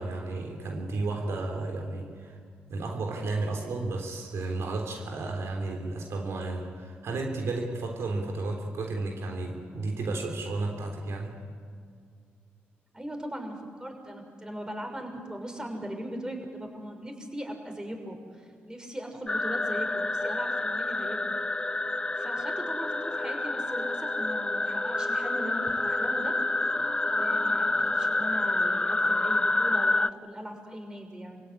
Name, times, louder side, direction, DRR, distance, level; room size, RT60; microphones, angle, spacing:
voice 1, 0.0-2.4 2.7-11.3, right 2 dB, 70° right, 3 dB, 3.5 m, -33 dB
voice 2, 12.9-21.3 22.1-26.3 27.0-27.7 27.9-31.4, equal, 15° right, 4 dB, 6.3 m, -39 dB
sound 1, 19.3-30.1, left 2 dB, 20° left, 0.6 m, -28 dB
27.0 x 16.5 x 9.8 m, 2.1 s
supercardioid pair, 50°, 5 cm